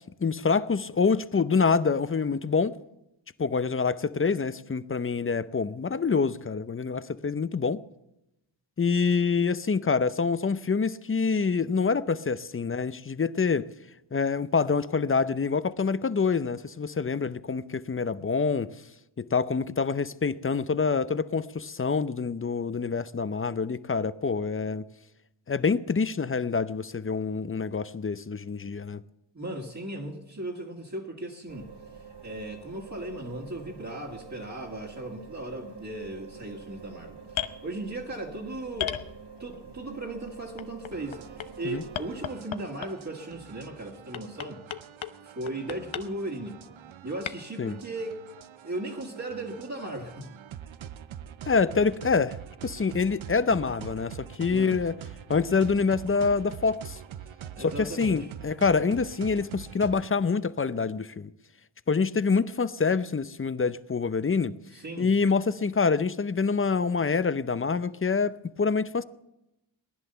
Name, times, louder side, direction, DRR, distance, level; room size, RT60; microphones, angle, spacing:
voice 1, 0.2-2.8 3.4-7.8 8.8-13.7 14.1-18.7 19.2-24.8 25.5-29.0 41.6-41.8 47.6-47.8 51.5-52.4 52.6-55.0 55.3-57.0 57.6-61.3 61.9-64.6 65.0-69.0, left 5 dB, 30° left, 0.6 m, -26 dB
voice 2, 29.3-31.7 32.2-37.2 37.6-39.0 39.4-41.2 41.6-44.6 45.2-46.5 47.0-48.2 48.6-50.3 54.5-54.8 57.6-58.3 64.7-65.1, right 1 dB, 35° right, 2.2 m, -37 dB
sound 1, 31.5-42.3, right 5 dB, 60° right, 1.2 m, -47 dB
sound 2, 37.3-37.6 38.8-39.6 40.6-41.5 41.9-43.1 44.1-45.2 45.5-46.0 47.2-47.3, left 10 dB, 80° left, 0.9 m, -34 dB
sound 3, 40.9-60.1, right 9 dB, 85° right, 0.7 m, -44 dB
18.5 x 10.5 x 6.8 m
wide cardioid pair, 70°, 46 cm